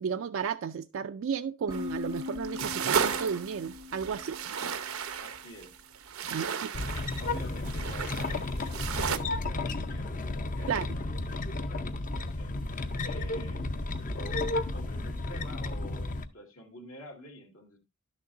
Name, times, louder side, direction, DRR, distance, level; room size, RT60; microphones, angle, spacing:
voice 1, 0.0-4.4 6.3-6.7 10.7-10.9, right 7 dB, 65° right, 0.3 m, -33 dB
sound 1, 1.7-5.3, left 5 dB, 15° right, 0.5 m, -41 dB
sound 2, 1.7-9.2, right 7 dB, 85° right, 0.7 m, -34 dB
voice 2, 5.2-5.8 6.2-6.6 7.2-12.6 13.0-13.6 14.0-17.8, equal, 75° left, 2.0 m, -49 dB
sound 3, 6.7-16.2, left 2 dB, 40° left, 0.6 m, -33 dB
11.5 x 6.5 x 2.5 m
head